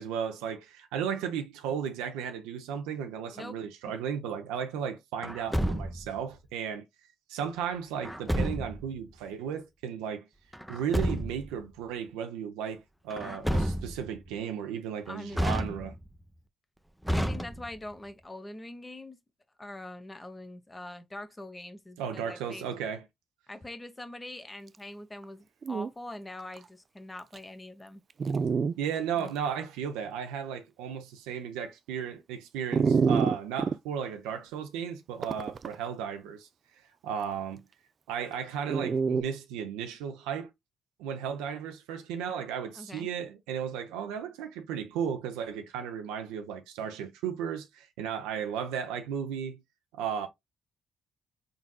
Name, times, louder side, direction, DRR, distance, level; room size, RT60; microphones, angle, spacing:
voice 1, 0.0-6.9 7.3-10.3 10.7-15.9 22.0-23.0 28.8-36.5 37.0-37.6 38.1-40.5 41.0-49.6 49.9-50.3, right 8 dB, 80° right, 0.7 m, -35 dB
Truck, 5.2-6.2 8.0-8.9 10.5-11.5 13.1-14.1 15.3-16.2 17.0-17.9, equal, ahead, 0.7 m, -30 dB
voice 2, 15.1-15.7 17.1-19.2 19.6-22.7 23.5-28.0 29.1-29.3 42.7-43.1, left 1 dB, 20° left, 1.1 m, -43 dB
Dog, 25.2-25.3 25.6-25.9 26.6-26.7 27.3-27.4 28.2-28.7 29.3-29.4 32.7-33.8 35.2-35.8 38.7-39.2, right 5 dB, 50° right, 0.3 m, -26 dB
4.1 x 3.9 x 2.3 m
hypercardioid pair, 45°, 0 cm